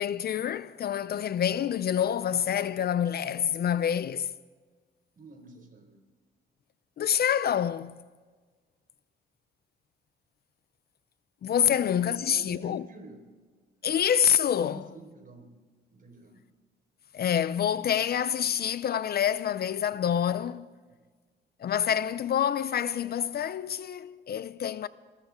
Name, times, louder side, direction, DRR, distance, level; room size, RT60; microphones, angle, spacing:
voice 1, 0.0-4.3 7.0-8.0 11.4-12.8 13.8-14.8 17.1-20.7 21.6-24.9, left 9 dB, 50° left, 0.6 m, -27 dB
voice 2, 5.2-6.0 11.7-13.2 14.6-15.5 15.9-16.4 20.9-21.1, right 2 dB, 45° right, 4.7 m, -48 dB
26.0 x 14.0 x 3.7 m
cardioid pair, 90°, 20 cm